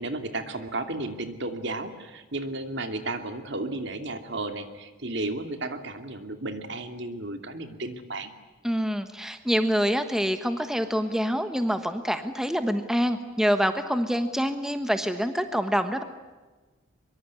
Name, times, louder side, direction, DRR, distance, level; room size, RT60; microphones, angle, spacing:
voice 1, 0.0-8.3, right 2 dB, 60° right, 7 dB, 2.7 m, -33 dB
voice 2, 8.6-16.0, equal, ahead, 8 dB, 1.2 m, -26 dB
24.5 x 23.0 x 9.7 m, 1.3 s
head